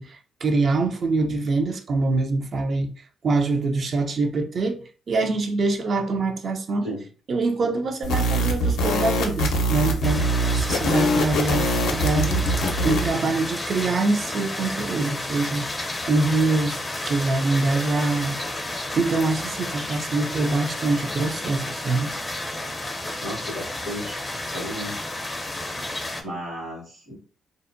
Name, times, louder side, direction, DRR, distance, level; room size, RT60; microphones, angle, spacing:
voice 1, 0.0-2.9 3.2-6.9 7.3-10.3 10.5-12.4 12.8-18.4 19.0-22.1, right 3 dB, 50° right, 0.4 m, -24 dB
sound 1, 8.0-13.1, equal, 80° left, 0.5 m, -23 dB
sound 2, 10.0-26.2, left 2 dB, 15° left, 0.4 m, -31 dB
voice 2, 23.2-24.9 26.2-27.1, equal, 70° right, 1.3 m, -34 dB
2.6 x 2.1 x 2.5 m
cardioid pair, 90°, 0 cm